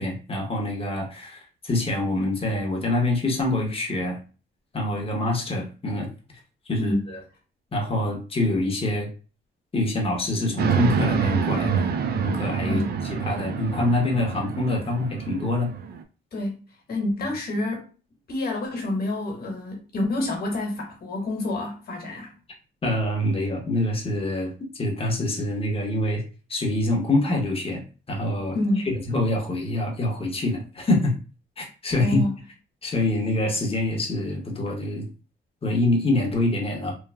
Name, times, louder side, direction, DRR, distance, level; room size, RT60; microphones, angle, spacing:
voice 1, 0.0-4.2 4.7-6.1 6.7-7.2 7.7-9.1 9.7-11.9 12.2-12.8 13.3-15.7 17.2-17.3 22.8-26.2 26.5-27.8 28.1-28.6 28.8-31.1 31.6-32.3 32.8-35.1 35.6-36.9, left 1 dB, 30° left, 1.0 m, -25 dB
voice 2, 6.8-7.1 12.7-12.9 16.3-16.6 16.9-17.9 18.3-22.3 28.5-28.9 32.0-32.4, left 1 dB, 50° left, 1.3 m, -28 dB
sound 1, 10.6-16.0, right 6 dB, 55° right, 0.4 m, -26 dB
3.2 x 2.2 x 2.3 m
cardioid pair, 90°, 20 cm